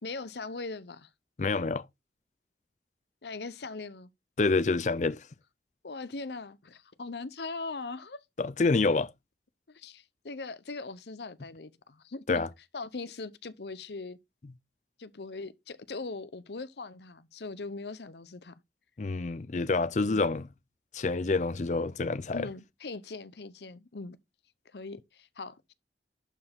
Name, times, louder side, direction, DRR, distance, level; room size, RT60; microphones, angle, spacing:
voice 1, 0.0-1.1 3.2-4.1 5.8-8.2 9.7-12.5 12.7-14.2 15.0-18.5 20.0-20.2 22.3-24.2 24.7-25.7, left 3 dB, 75° left, 0.8 m, -40 dB
voice 2, 1.4-1.8 4.4-5.3 8.4-9.1 12.3-12.5 19.0-20.5 20.9-22.5, left 3 dB, 40° left, 0.5 m, -27 dB
11.5 x 4.8 x 3.5 m
head